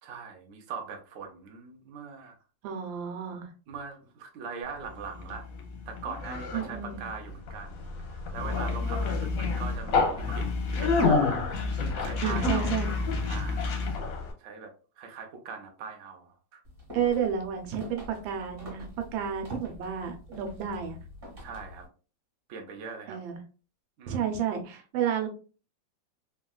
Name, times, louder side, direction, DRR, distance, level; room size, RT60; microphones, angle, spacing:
voice 1, 0.0-2.4 3.7-5.5 5.9-12.8 13.2-13.8 14.4-16.6 21.4-21.9 22.5-23.2 24.0-24.4, right 5 dB, 65° right, 3 dB, 0.8 m, -41 dB
voice 2, 2.6-3.5 6.5-7.0 12.2-13.3 16.9-21.0 23.1-23.4 24.1-25.3, right 7 dB, 85° right, 4 dB, 1.4 m, -31 dB
Conversation, 4.8-14.3, left 4 dB, 65° left, 0.9 m, -29 dB
sound 1, 16.6-21.9, left 1 dB, 35° right, 1.3 m, -46 dB
3.5 x 2.2 x 2.2 m, 0.36 s
omnidirectional pair, 2.1 m